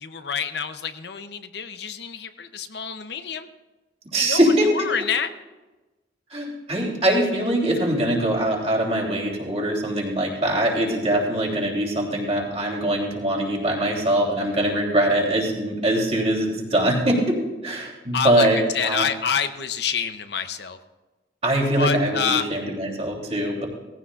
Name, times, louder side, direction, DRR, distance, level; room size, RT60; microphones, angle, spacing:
voice 1, 0.0-3.5 4.1-5.3 18.1-18.5 18.7-20.8 21.8-22.4, left 6 dB, 70° left, 9 dB, 0.7 m, -27 dB
voice 2, 4.1-4.9 6.3-19.0 21.4-23.6, right 1 dB, 35° right, -2 dB, 3.3 m, -22 dB
18.0 x 15.5 x 2.5 m, 1.2 s
head